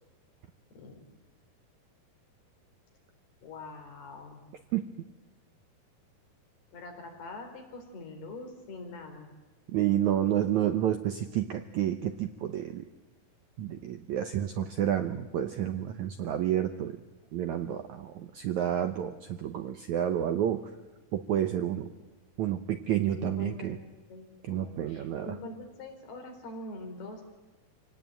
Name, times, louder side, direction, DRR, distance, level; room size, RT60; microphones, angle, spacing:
voice 1, 3.4-4.4 6.7-9.3 23.2-23.8 24.1-27.2, left 2 dB, 80° left, 3 dB, 6.0 m, -43 dB
voice 2, 9.7-12.9 13.6-17.0 17.3-20.7 21.1-21.9 22.4-23.8 24.4-25.4, right 11 dB, 80° right, 8 dB, 1.7 m, -30 dB
26.5 x 18.5 x 9.0 m, 1.2 s
omnidirectional pair, 4.5 m